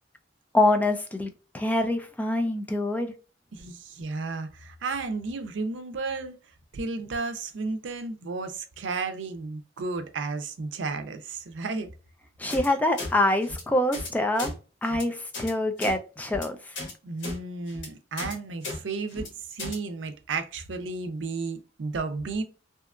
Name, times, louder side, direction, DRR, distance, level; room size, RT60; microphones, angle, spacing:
voice 1, 0.5-3.1 12.4-14.6 14.8-16.7, left 1 dB, 10° left, 0.3 m, -25 dB
voice 2, 3.5-6.3 6.7-11.9 17.0-22.4, right 3 dB, 85° right, 0.5 m, -33 dB
sound 1, 12.5-12.7 13.0-13.1 13.4-13.6 13.9-14.1 14.4-14.5 14.8-15.0 15.3-15.5 15.8-15.9 16.3-16.4 16.7-16.9 17.2-17.4 17.7-17.9 18.2-18.3 18.6-18.8 19.1-19.3 19.6-19.8, left 2 dB, 90° left, 1.1 m, -35 dB
2.8 x 2.3 x 2.3 m
head